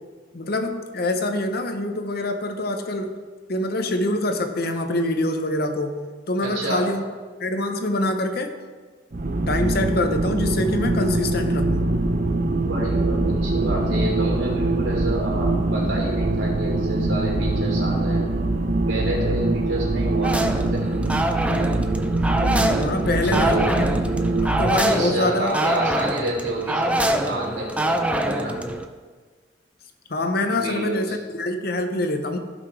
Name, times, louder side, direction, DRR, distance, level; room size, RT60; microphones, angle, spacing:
voice 1, 0.3-3.2 3.5-7.0 7.4-8.5 9.5-11.9 22.8-23.8 24.4-25.5 30.1-32.4, left 1 dB, 55° left, 6 dB, 0.9 m, -25 dB
voice 2, 6.4-6.9 12.6-18.2 18.9-20.8 23.0-23.8 24.8-28.6 30.5-31.2, right 1 dB, 80° right, -3 dB, 3.2 m, -29 dB
sound 1, 9.1-24.8, right 2 dB, 45° right, 0.7 m, -23 dB
sound 2, 20.2-28.8, right 1 dB, 5° right, 0.5 m, -25 dB
16.0 x 5.7 x 3.3 m, 1.4 s
head